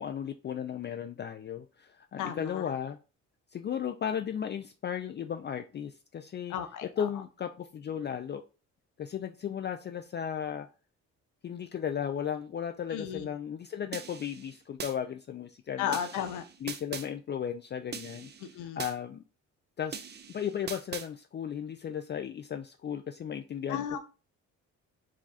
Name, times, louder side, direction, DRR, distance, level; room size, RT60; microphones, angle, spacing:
voice 1, 0.0-3.0 3.5-6.5 6.8-8.4 9.0-10.7 11.4-16.0 16.6-18.3 18.8-19.2 19.8-20.0 20.3-24.0, left 8 dB, 35° left, 0.4 m, -35 dB
voice 2, 2.2-2.7 6.5-7.1 12.9-13.3 15.8-16.4 18.4-18.8 23.7-24.0, left 9 dB, 85° left, 0.6 m, -34 dB
sound 1, 13.9-14.9 15.9-17.1 17.9-18.9 19.9-21.1, right 7 dB, 35° right, 0.5 m, -41 dB
4.9 x 2.3 x 3.9 m
cardioid pair, 90°, 30 cm